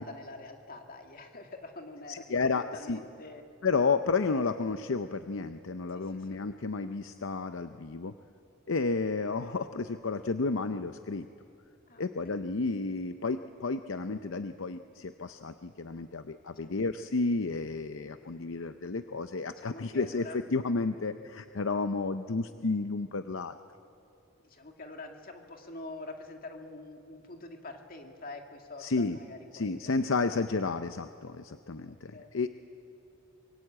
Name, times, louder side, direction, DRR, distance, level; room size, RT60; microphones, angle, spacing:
voice 1, 0.0-3.4 5.9-6.4 11.9-12.4 16.6-16.7 19.6-20.4 24.4-29.9 31.8-32.4, left 2 dB, 45° left, 4 dB, 2.3 m, -46 dB
voice 2, 2.1-3.0 3.6-8.1 8.7-11.3 12.0-23.5 28.8-29.2 29.5-32.5, left 4 dB, 65° left, 9 dB, 0.7 m, -31 dB
24.5 x 23.0 x 8.7 m, 2.6 s
head